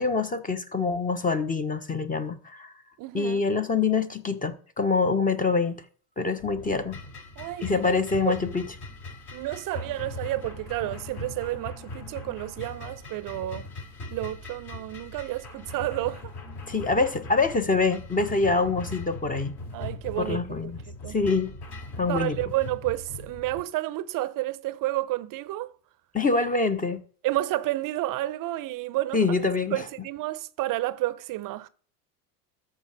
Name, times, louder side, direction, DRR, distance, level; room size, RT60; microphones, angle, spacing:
voice 1, 0.0-2.7 3.1-5.8 6.2-7.0 7.6-8.7 16.7-19.5 20.2-20.8 21.1-21.5 22.0-22.4 26.1-27.0 29.1-29.8, left 4 dB, 15° left, 0.9 m, -25 dB
voice 2, 3.0-3.5 7.4-7.9 8.3-8.4 9.3-13.7 14.1-16.2 19.7-20.4 20.9-21.2 22.0-25.7 27.2-29.3 29.7-31.7, right 16 dB, 45° right, 0.7 m, -30 dB
sound 1, 6.4-23.6, left 2 dB, 55° left, 4.5 m, -40 dB
13.5 x 4.6 x 3.4 m
hypercardioid pair, 80°, 47 cm